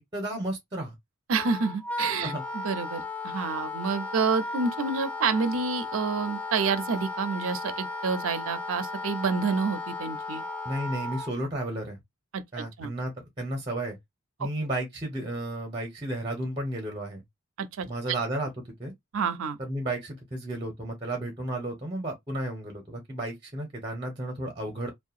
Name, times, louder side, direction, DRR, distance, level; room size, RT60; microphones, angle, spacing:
voice 1, 0.1-1.0 2.2-2.4 10.6-12.0 12.5-14.0 14.4-17.2 17.9-18.5 18.8-18.9 19.6-24.9, right 1 dB, 20° right, 0.8 m, -33 dB
Wind instrument woodwind instrument, 1.3-11.3, left 3 dB, 5° left, 0.4 m, -35 dB
voice 2, 1.3-10.4 12.3-12.9 17.6-18.1 19.1-19.6, right 5 dB, 65° right, 0.5 m, -29 dB
2.7 x 2.2 x 2.3 m
head